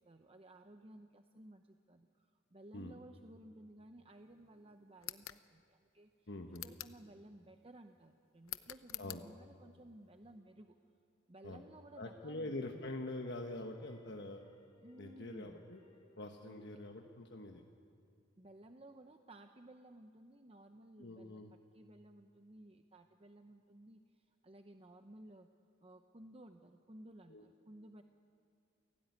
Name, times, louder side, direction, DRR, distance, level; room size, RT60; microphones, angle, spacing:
voice 1, 0.0-6.3 6.6-10.8 11.3-12.9 14.8-15.6 16.4-16.8 18.4-25.5 25.8-28.0, right 1 dB, 30° right, 6 dB, 0.8 m, -57 dB
sound 1, 5.0-5.4 6.5-7.0 8.5-9.2, left 14 dB, 90° left, 0.8 m, -46 dB
voice 2, 6.3-6.6 9.0-9.2 11.4-11.6 12.0-14.4 15.0-15.8 16.2-17.6 21.0-21.5 27.3-27.4, left 2 dB, 55° left, 3 dB, 1.3 m, -45 dB
sound 2, 10.0-11.5 11.9-16.2, left 1 dB, 25° left, 3.4 m, -69 dB
29.0 x 18.0 x 9.5 m, 2.5 s
head